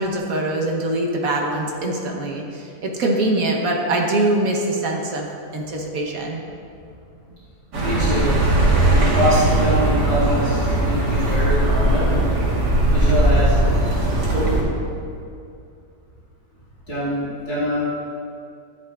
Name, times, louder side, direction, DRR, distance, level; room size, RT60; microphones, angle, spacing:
voice 1, 0.0-5.3 5.5-6.4, right 2 dB, 60° right, 0 dB, 1.5 m, -23 dB
Accelerating revving vroom, 7.7-14.6, right 1 dB, 80° right, 2.2 m, -18 dB
voice 2, 7.8-8.4 8.9-12.5 12.9-13.6 16.9-17.9, right 1 dB, 65° left, -12 dB, 3.1 m, -24 dB
13.0 x 10.5 x 2.5 m, 2.5 s
omnidirectional pair, 1.8 m